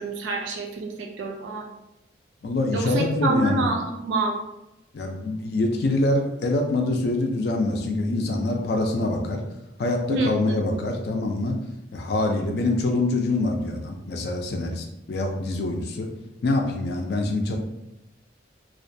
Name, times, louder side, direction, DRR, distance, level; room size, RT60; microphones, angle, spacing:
voice 1, 0.0-1.7 2.7-4.4 10.1-10.6, right 2 dB, 75° right, 2 dB, 0.4 m, -27 dB
voice 2, 2.4-3.7 4.9-9.4 9.8-11.6 11.9-16.1 16.4-17.6, left 2 dB, 55° left, 3 dB, 0.4 m, -25 dB
2.4 x 2.2 x 2.6 m, 0.88 s
head